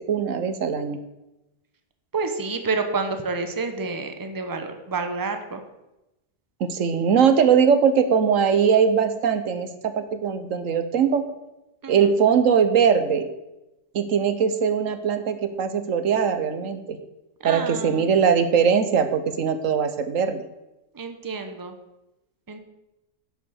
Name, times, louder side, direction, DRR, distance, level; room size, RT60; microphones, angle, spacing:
voice 1, 0.1-1.0 6.6-11.3 11.9-13.3 13.9-17.0 17.4-20.4, right 7 dB, 75° right, 10 dB, 1.2 m, -21 dB
voice 2, 2.1-5.6 11.8-12.1 17.4-18.1 20.9-21.7 22.5-22.6, right 4 dB, 15° right, 6 dB, 0.9 m, -29 dB
11.0 x 7.0 x 6.4 m, 0.96 s
omnidirectional pair, 1.4 m